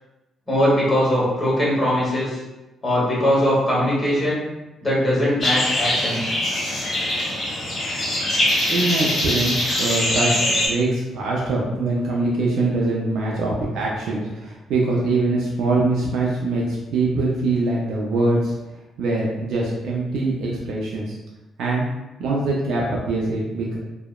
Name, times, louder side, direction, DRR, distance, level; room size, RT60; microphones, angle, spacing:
voice 1, 0.5-2.4 2.8-4.4 4.8-6.3, equal, 20° left, -6 dB, 1.2 m, -20 dB
sound 1, 5.4-10.7, left 1 dB, 40° left, 1.0 m, -23 dB
voice 2, 8.6-18.5 19.0-21.2 21.6-21.8 22.2-23.8, right 2 dB, 80° right, -4 dB, 0.4 m, -23 dB
2.7 x 2.0 x 2.3 m, 1.0 s
cardioid pair, 90°, 0 cm